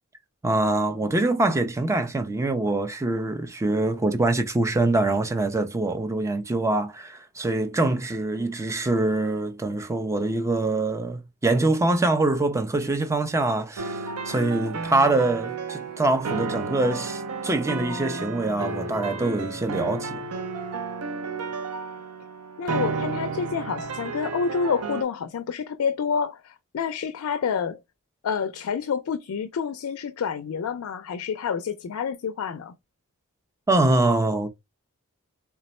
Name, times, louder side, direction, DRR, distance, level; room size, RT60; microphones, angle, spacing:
voice 1, 0.4-20.3 33.7-34.5, right 2 dB, 15° right, 0.4 m, -24 dB
sound 1, 13.8-25.0, right 4 dB, 80° right, 0.5 m, -32 dB
voice 2, 22.6-27.8 28.2-32.7, left 6 dB, 65° left, 0.4 m, -28 dB
3.3 x 2.0 x 4.1 m
head